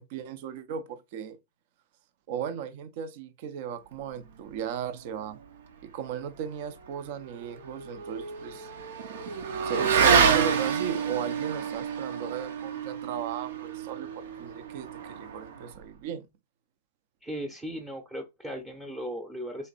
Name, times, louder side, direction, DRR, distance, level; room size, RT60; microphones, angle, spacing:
voice 1, 0.0-1.4 2.3-5.4 5.8-8.7 9.6-16.3, right 8 dB, 55° right, 0.7 m, -36 dB
Motorcycle / Accelerating revving vroom, 7.1-15.8, right 6 dB, 80° right, 0.9 m, -28 dB
voice 2, 17.2-19.7, equal, 10° right, 0.8 m, -37 dB
4.0 x 2.8 x 4.0 m
supercardioid pair, 145°, 0 cm